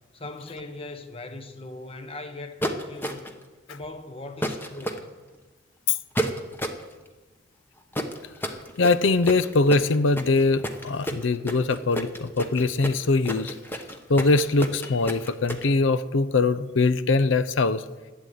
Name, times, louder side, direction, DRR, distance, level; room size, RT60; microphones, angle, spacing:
voice 1, 0.1-3.3 3.7-5.1, left 2 dB, 30° left, 1.2 m, -39 dB
sound 1, 2.6-3.4 4.4-5.0 6.2-6.8 7.9-15.6, equal, 10° left, 1.0 m, -30 dB
voice 2, 8.8-13.5 14.1-17.8, left 3 dB, 75° left, 0.6 m, -22 dB
12.0 x 8.1 x 9.3 m
head